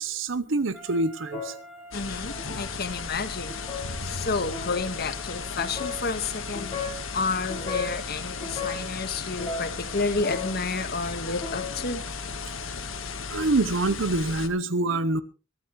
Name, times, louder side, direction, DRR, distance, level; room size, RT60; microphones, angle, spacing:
voice 1, 0.0-1.5 13.3-15.2, right 2 dB, 70° right, 0.9 m, -26 dB
sound 1, 0.7-13.6, right 1 dB, 5° right, 3.1 m, -47 dB
sound 2, 1.3-1.7 2.3-2.7 3.4-3.9 4.4-4.9 5.5-6.0 6.5-7.0 7.4-8.0 8.4-8.9 9.3-10.7 11.1-11.9, left 4 dB, 20° left, 6.5 m, -35 dB
sound 3, 1.9-14.5, left 5 dB, 85° left, 1.5 m, -36 dB
voice 2, 1.9-3.5 4.0-6.7 7.1-12.0, left 3 dB, 55° left, 1.5 m, -30 dB
23.5 x 12.5 x 3.2 m
head